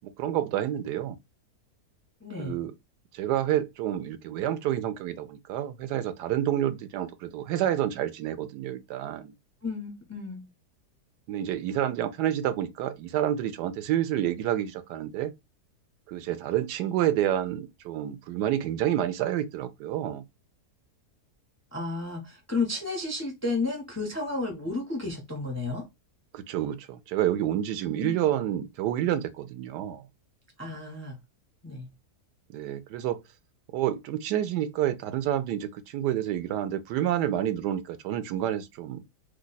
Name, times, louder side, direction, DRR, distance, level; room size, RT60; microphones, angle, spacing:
voice 1, 0.0-1.1 2.4-2.7 3.1-9.3 11.3-15.3 16.1-20.2 26.3-30.0 32.5-33.2 33.7-39.0, right 11 dB, 80° right, 1.1 m, -29 dB
voice 2, 2.2-2.6 9.6-10.5 21.7-25.8 27.8-28.2 30.6-31.2 31.6-31.9, left 3 dB, 25° left, 0.3 m, -32 dB
3.0 x 2.3 x 3.9 m
omnidirectional pair, 1.8 m